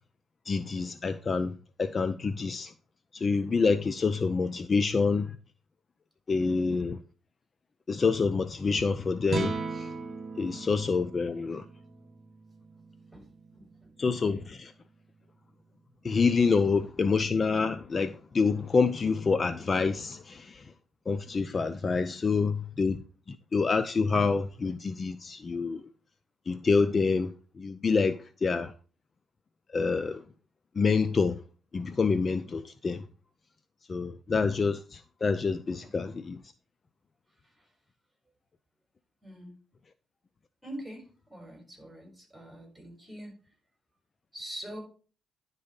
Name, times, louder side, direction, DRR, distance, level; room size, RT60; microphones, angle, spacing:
voice 1, 0.5-2.7 3.1-5.4 6.3-7.0 7.9-9.9 10.4-11.6 14.0-14.7 16.0-20.7 21.1-23.0 23.3-25.9 26.5-28.7 29.7-30.2 30.8-31.4 31.7-33.0 33.9-36.4, left 4 dB, 35° left, 0.5 m, -27 dB
voice 2, 6.4-6.8 13.1-13.2 13.6-13.9 35.8-35.9 37.4-37.7 39.2-39.5 40.6-43.3 44.3-44.8, right 1 dB, 5° right, 4.5 m, -44 dB
sound 1, 9.2-15.6, right 4 dB, 45° right, 1.1 m, -39 dB
10.5 x 4.1 x 5.2 m
cardioid pair, 90°, 0 cm